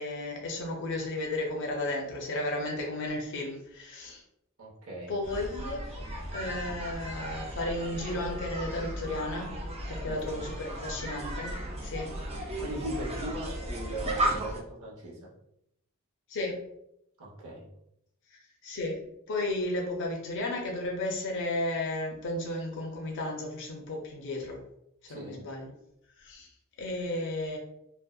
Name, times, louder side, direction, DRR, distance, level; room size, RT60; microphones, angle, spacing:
voice 1, 0.0-4.2 5.1-5.9 6.3-9.5 9.9-12.2 16.3-16.6 18.6-24.6 25.1-25.7 26.2-26.5 26.8-27.6, left 2 dB, 55° left, 0 dB, 0.5 m, -34 dB
voice 2, 4.6-5.1 10.0-10.2 12.6-15.3 17.2-17.7 25.1-25.5, right 1 dB, 70° right, -4 dB, 0.8 m, -38 dB
sound 1, 5.2-14.6, right 1 dB, 30° right, 0.4 m, -35 dB
2.6 x 2.1 x 2.3 m, 0.77 s
head